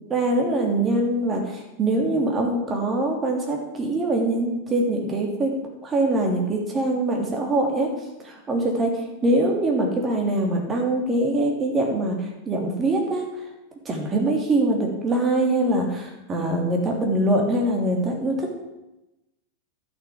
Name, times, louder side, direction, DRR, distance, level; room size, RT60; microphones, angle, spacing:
voice 1, 0.1-5.5 5.8-7.9 8.2-13.3 13.8-18.5, right 1 dB, 20° right, 1 dB, 2.9 m, -23 dB
11.5 x 6.6 x 7.5 m, 0.96 s
figure-of-eight pair, 90°, 0 cm